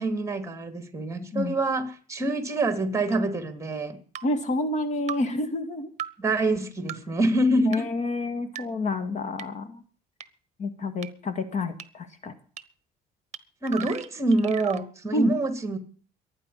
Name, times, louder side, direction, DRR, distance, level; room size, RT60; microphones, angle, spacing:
voice 1, 0.0-4.0 6.2-7.9 13.6-15.8, right 2 dB, 15° right, 8 dB, 2.8 m, -26 dB
sound 1, 3.1-3.2 4.1-4.3 5.1-5.2 6.0-6.1 6.9-7.0 7.7-7.8 8.6-8.7 9.4-9.5 10.2-10.3 11.0-11.1 11.8-11.9 12.6-12.7 13.3-13.4 13.7-14.8, right 9 dB, 40° right, 1.1 m, -36 dB
voice 2, 4.2-5.9 7.7-9.8 10.6-12.3 15.1-15.3, left 2 dB, 45° left, 10 dB, 2.1 m, -29 dB
22.5 x 9.6 x 5.7 m, 0.43 s
cardioid pair, 110°, 17 cm